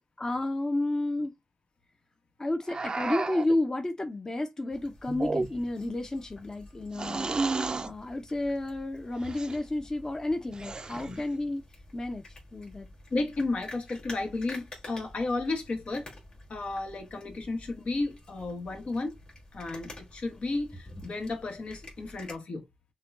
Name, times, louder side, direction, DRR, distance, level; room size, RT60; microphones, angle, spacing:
voice 1, 0.2-1.3 2.4-11.6 11.9-12.2 12.5-12.9, left 2 dB, 25° left, 0.7 m, -31 dB
sound 1, 2.7-3.6 5.1-5.8 6.9-7.9 9.2-9.6 10.5-11.2, right 3 dB, 40° right, 0.4 m, -32 dB
sound 2, 4.7-22.4, left 2 dB, 45° left, 2.4 m, -49 dB
voice 2, 13.1-16.1 16.5-19.2 19.5-22.7, left 2 dB, 70° left, 1.3 m, -33 dB
6.4 x 2.3 x 2.4 m
wide cardioid pair, 90°, 2 cm